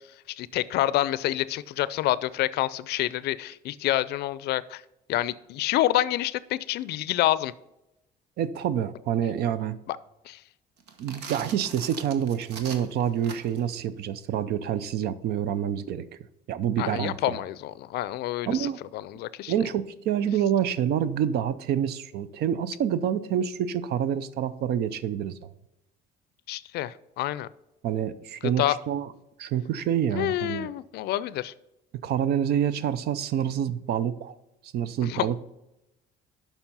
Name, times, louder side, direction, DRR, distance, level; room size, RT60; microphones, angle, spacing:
voice 1, 0.4-4.8 5.1-7.5 9.9-10.0 10.3-10.4 16.8-19.5 26.5-27.5 28.6-28.8 30.1-31.5 35.0-35.4, left 14 dB, 75° left, 18 dB, 0.4 m, -28 dB
voice 2, 8.4-9.8 11.0-16.1 16.5-17.4 18.5-18.8 19.5-25.4 27.8-29.1 29.4-30.7 32.0-34.3 34.7-35.4, right 9 dB, 70° right, 16 dB, 0.6 m, -27 dB
sound 1, 10.8-13.7, right 5 dB, 90° right, 1.1 m, -41 dB
7.2 x 5.5 x 5.4 m, 0.94 s
cardioid pair, 110°, 17 cm